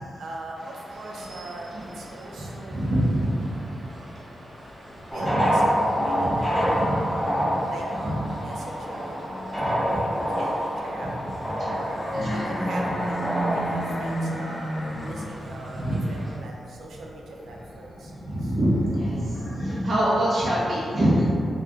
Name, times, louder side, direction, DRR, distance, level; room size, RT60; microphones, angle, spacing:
voice 1, 0.2-3.6 5.0-7.1 7.7-9.2 9.6-11.1 11.7-13.2 13.5-14.7 15.0-18.1 18.4-18.5, right 2 dB, 80° right, -1 dB, 0.5 m, -40 dB
sound 1, 0.6-16.4, equal, 35° right, 0.7 m, -45 dB
sound 2, 0.9-3.8 4.1-6.7 7.1-19.8, equal, 50° left, 0.6 m, -35 dB
voice 2, 2.7-3.4 5.2-5.4 6.1-6.9 8.0-8.2 9.6-10.0 11.6-11.8 12.1-12.5 15.4-15.5 15.8-16.2 18.2-21.3, right 1 dB, 55° right, -8 dB, 1.1 m, -25 dB
sound 3, 5.1-14.1, equal, 5° left, 0.7 m, -27 dB
3.5 x 2.5 x 3.5 m, 2.5 s
wide cardioid pair, 110°, 0 cm